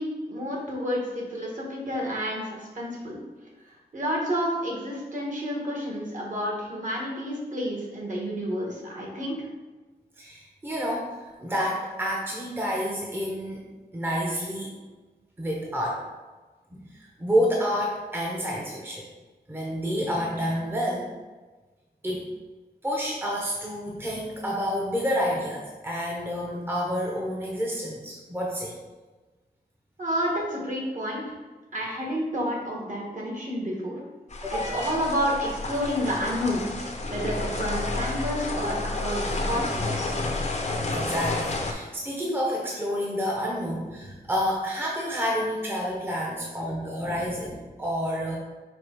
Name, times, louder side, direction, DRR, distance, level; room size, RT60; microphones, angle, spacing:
voice 1, 0.0-3.2 3.9-9.5 30.0-31.4 31.7-34.0 34.5-36.7 37.1-40.2, equal, 50° right, -3 dB, 1.5 m, -30 dB
voice 2, 10.2-13.6 13.9-14.7 15.4-16.0 16.7-16.8 17.2-19.1 19.5-21.1 22.0-22.3 22.8-28.8 34.4-35.0 40.9-48.4, equal, 15° right, -2 dB, 0.8 m, -29 dB
sound 1, 34.3-41.7, left 2 dB, 45° left, 0.7 m, -30 dB
5.1 x 2.3 x 4.5 m, 1.3 s
wide cardioid pair, 70°, 17 cm